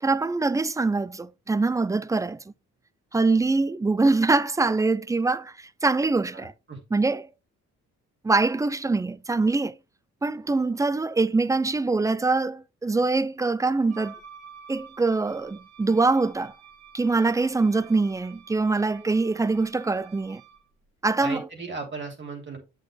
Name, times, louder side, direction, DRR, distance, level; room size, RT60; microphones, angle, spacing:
voice 1, 0.0-2.4 3.1-6.5 6.9-7.3 8.2-9.7 10.2-14.2 14.7-16.5 16.9-20.4 21.0-21.5, right 3 dB, 10° right, 0.3 m, -24 dB
voice 2, 6.3-6.8 21.2-22.6, right 4 dB, 40° right, 2.8 m, -36 dB
Wind instrument woodwind instrument, 13.9-20.7, right 7 dB, 55° right, 3.4 m, -50 dB
7.7 x 6.3 x 2.3 m
cardioid pair, 90°, 30 cm